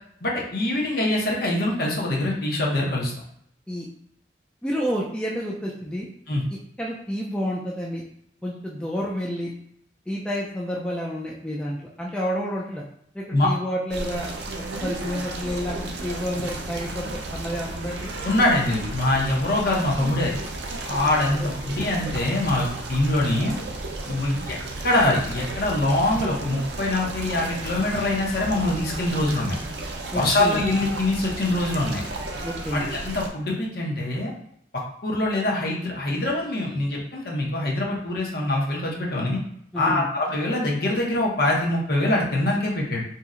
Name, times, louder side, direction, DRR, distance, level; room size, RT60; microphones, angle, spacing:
voice 1, 0.2-3.1 6.3-6.4 13.3-13.5 18.2-20.4 20.8-23.6 24.0-24.6 24.8-29.6 30.1-32.0 32.7-34.3 35.0-39.4 39.8-43.0, left 1 dB, 55° left, -3 dB, 0.8 m, -24 dB
voice 2, 4.6-6.1 6.8-8.0 8.4-9.5 10.1-12.8 13.1-14.3 14.6-18.1 21.4-21.5 30.1-30.6 32.4-32.9 39.7-40.1, equal, 5° left, -4 dB, 0.3 m, -29 dB
sound 1, 13.9-33.3, right 2 dB, 65° right, 0.5 m, -33 dB
2.7 x 2.1 x 3.6 m, 0.69 s
head